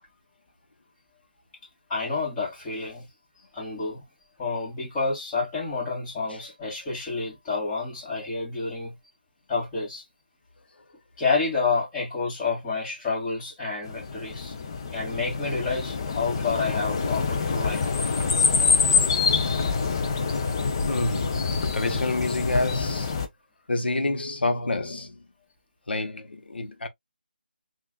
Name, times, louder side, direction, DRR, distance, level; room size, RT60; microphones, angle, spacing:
voice 1, 1.9-3.1 3.5-4.0 4.4-9.0 9.5-10.0 11.2-14.5 14.9-17.9, left 4 dB, 10° left, 1.8 m, -29 dB
sound 1, 13.9-23.3, left 5 dB, 30° left, 0.5 m, -26 dB
voice 2, 20.8-23.2 23.7-25.2 25.9-26.9, left 2 dB, 75° left, 0.9 m, -28 dB
5.7 x 2.5 x 2.2 m
figure-of-eight pair, 165°, 6 cm